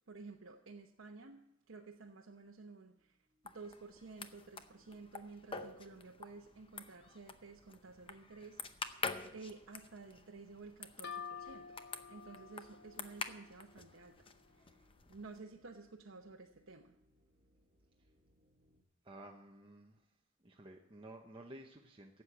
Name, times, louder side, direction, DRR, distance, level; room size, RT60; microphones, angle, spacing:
voice 1, 0.1-3.2 3.4-11.8 12.0-17.0, right 3 dB, 70° right, 0 dB, 0.9 m, -53 dB
sound 1, 2.9-18.8, equal, 45° right, 1.7 m, -75 dB
sound 2, 3.4-15.4, left 4 dB, 25° left, 0.7 m, -48 dB
sound 3, 11.0-14.6, left 7 dB, 55° left, 1.1 m, -50 dB
voice 2, 19.0-20.0 20.4-22.2, right 1 dB, 25° right, 0 dB, 0.9 m, -53 dB
12.5 x 8.3 x 7.4 m, 0.81 s
head